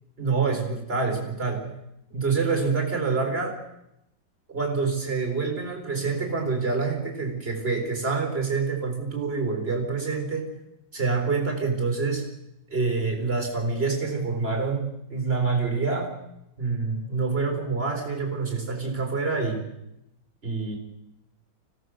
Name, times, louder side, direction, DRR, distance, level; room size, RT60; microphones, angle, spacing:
voice 1, 0.2-1.8 2.1-3.6 4.5-10.5 10.9-12.3 12.7-16.1 16.6-19.7 20.4-20.8, right 4 dB, 30° right, 4 dB, 4.4 m, -26 dB
25.5 x 17.0 x 6.4 m, 0.85 s
omnidirectional pair, 2.2 m